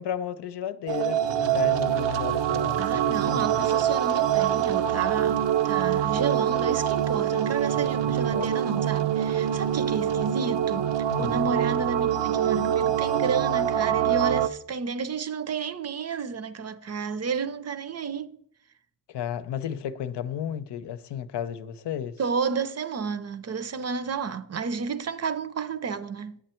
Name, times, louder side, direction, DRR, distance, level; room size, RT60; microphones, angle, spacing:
voice 1, 0.0-3.6 8.1-8.5 11.1-11.4 19.1-22.2, left 9 dB, 70° left, 0.8 m, -33 dB
sound 1, 0.9-14.5, right 10 dB, 75° right, 0.7 m, -25 dB
voice 2, 2.8-18.3 22.2-26.4, right 5 dB, 35° right, 0.7 m, -31 dB
10.0 x 7.9 x 4.4 m
cardioid pair, 95°, 44 cm